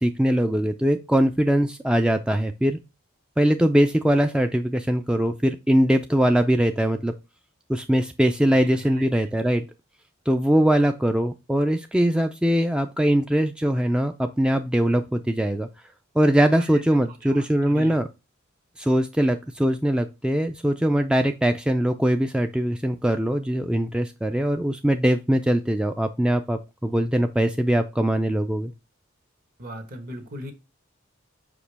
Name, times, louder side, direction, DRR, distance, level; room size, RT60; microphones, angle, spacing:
voice 1, 0.0-2.8 3.4-7.1 7.7-9.7 10.3-15.7 16.2-18.1 18.8-28.7, right 1 dB, 5° right, 0.3 m, -22 dB
voice 2, 8.5-9.1 16.6-16.8 17.2-17.9 29.6-30.5, equal, 45° right, 1.1 m, -39 dB
5.8 x 5.0 x 3.3 m
head